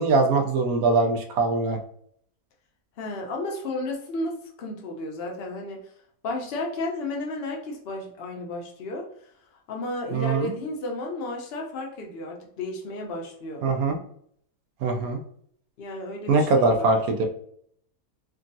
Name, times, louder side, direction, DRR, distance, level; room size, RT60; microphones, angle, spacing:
voice 1, 0.0-1.8 10.1-10.5 13.6-14.0 14.8-15.2 16.3-17.3, right 3 dB, 80° right, 3 dB, 1.1 m, -22 dB
voice 2, 3.0-5.8 6.2-9.1 9.7-13.6 15.8-16.9, left 2 dB, 55° left, 1 dB, 0.7 m, -33 dB
3.5 x 2.3 x 2.6 m, 0.64 s
omnidirectional pair, 1.5 m